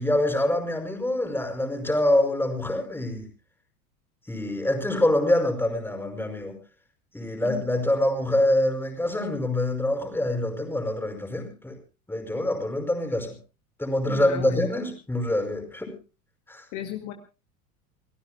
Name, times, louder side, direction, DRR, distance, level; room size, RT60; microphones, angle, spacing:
voice 1, 0.0-3.3 4.3-6.6 7.1-11.8 12.1-13.4 13.8-16.0 16.5-16.7, left 1 dB, 5° left, 5 dB, 5.3 m, -25 dB
voice 2, 14.1-14.8 16.7-17.1, left 11 dB, 45° left, 4 dB, 2.2 m, -35 dB
29.0 x 18.0 x 2.3 m, 0.32 s
hypercardioid pair, 90°, 44 cm